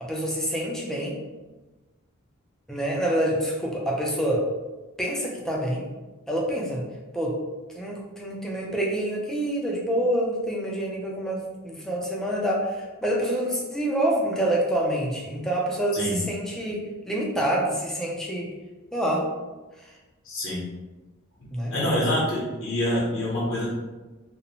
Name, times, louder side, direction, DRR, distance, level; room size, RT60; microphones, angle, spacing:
voice 1, 0.0-1.2 2.7-4.4 5.0-5.9 6.3-6.8 7.1-7.4 7.7-18.5 18.9-19.3 21.5-21.7, right 1 dB, ahead, -3 dB, 0.4 m, -27 dB
voice 2, 20.2-20.6 21.7-23.7, left 1 dB, 65° left, -6 dB, 0.8 m, -26 dB
2.6 x 2.0 x 2.7 m, 1.2 s
head